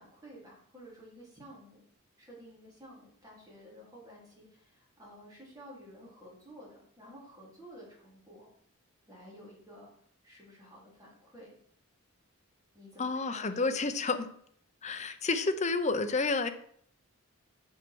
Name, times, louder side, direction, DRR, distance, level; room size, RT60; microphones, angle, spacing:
voice 1, 0.0-1.8 2.2-8.5 9.1-9.9 10.2-11.6 12.7-13.8, equal, 15° right, -6 dB, 3.9 m, -52 dB
voice 2, 13.0-14.3 14.8-16.5, left 3 dB, 30° left, 8 dB, 0.7 m, -30 dB
7.5 x 5.6 x 6.2 m, 0.63 s
head